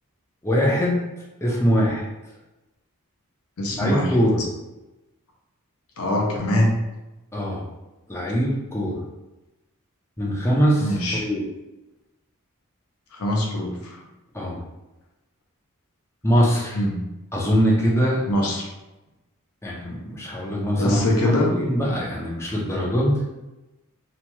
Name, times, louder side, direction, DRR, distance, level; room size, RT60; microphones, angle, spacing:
voice 1, 0.4-1.0 1.4-2.0 3.8-4.4 7.3-7.7 8.1-9.0 10.2-10.9 11.2-11.4 14.3-14.6 16.2-16.8 17.3-18.2 19.6-21.0 21.5-23.2, equal, 10° left, -3 dB, 0.6 m, -22 dB
voice 2, 3.6-4.1 6.0-6.7 10.8-11.2 13.1-14.0 16.7-17.0 18.3-18.7 20.7-21.5, left 1 dB, 70° left, 0 dB, 0.7 m, -23 dB
2.9 x 2.9 x 2.2 m, 1.0 s
head